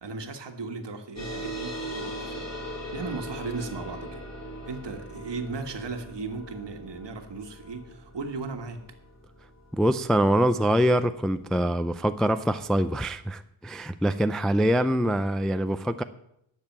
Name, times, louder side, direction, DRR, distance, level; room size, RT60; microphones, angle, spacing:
voice 1, 0.0-2.5 2.9-4.2 4.7-8.8, right 4 dB, 55° right, 5 dB, 1.6 m, -36 dB
sound 1, 1.2-12.1, equal, 30° left, 3.0 m, -40 dB
voice 2, 9.7-16.0, equal, ahead, 10 dB, 0.3 m, -24 dB
10.5 x 6.9 x 7.3 m, 0.79 s
wide cardioid pair, 95°, 50 cm